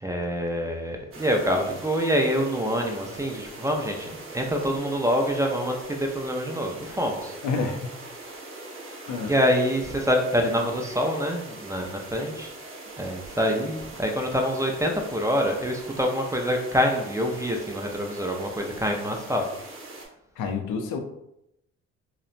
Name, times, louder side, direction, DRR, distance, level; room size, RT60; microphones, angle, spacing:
voice 1, 0.0-7.3 9.3-12.5 13.0-19.5, equal, 10° right, 2 dB, 0.3 m, -26 dB
sound 1, 1.1-20.1, right 2 dB, 45° right, 0.8 m, -42 dB
voice 2, 7.4-7.9 9.1-9.3 20.4-21.0, left 4 dB, 80° left, 5 dB, 0.5 m, -28 dB
2.8 x 2.1 x 2.4 m, 0.82 s
cardioid pair, 90°, 30 cm